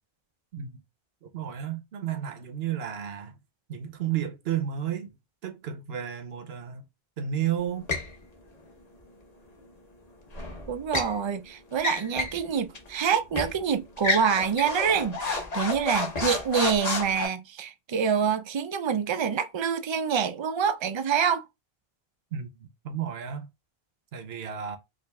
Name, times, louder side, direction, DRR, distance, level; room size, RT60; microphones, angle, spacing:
voice 1, 1.2-3.4 3.7-5.2 5.4-6.9 7.2-7.9 22.3-23.5 24.1-24.8, right 9 dB, 75° right, 1.0 m, -32 dB
sound 1, 7.9-8.1 10.3-11.1 11.7-12.4 12.7-12.9 13.3-13.6 14.0-17.3, left 3 dB, 40° left, 1.0 m, -30 dB
voice 2, 10.7-21.4, right 7 dB, 50° right, 0.3 m, -26 dB
4.8 x 2.5 x 2.2 m
omnidirectional pair, 1.0 m